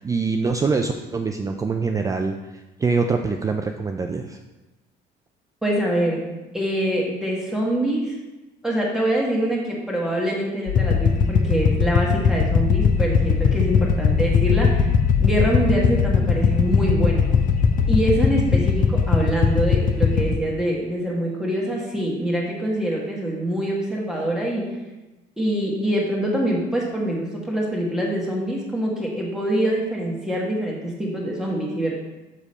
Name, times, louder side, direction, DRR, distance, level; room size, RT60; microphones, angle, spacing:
voice 1, 0.0-4.4, right 4 dB, 20° right, 4 dB, 0.4 m, -24 dB
voice 2, 5.6-6.3 6.5-8.2 8.6-14.9 15.2-17.3 17.9-24.7 25.4-32.0, right 1 dB, 5° right, -4 dB, 1.3 m, -24 dB
sound 1, 10.7-20.3, left 6 dB, 50° left, 0.8 m, -19 dB
6.5 x 5.1 x 4.2 m, 1.1 s
cardioid pair, 110°, 17 cm